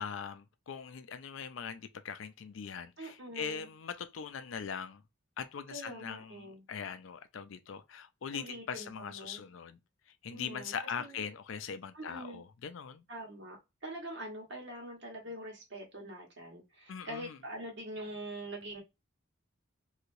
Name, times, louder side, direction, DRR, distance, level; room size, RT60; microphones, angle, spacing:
voice 1, 0.0-5.0 5.4-9.8 10.2-13.0 16.9-17.4, left 7 dB, 75° left, 0.4 m, -41 dB
voice 2, 3.0-3.7 5.7-6.6 8.3-9.5 10.3-10.7 11.0-11.2 11.9-12.4 13.1-13.6 13.8-18.8, right 1 dB, 60° right, 1.4 m, -44 dB
3.2 x 2.8 x 2.6 m
head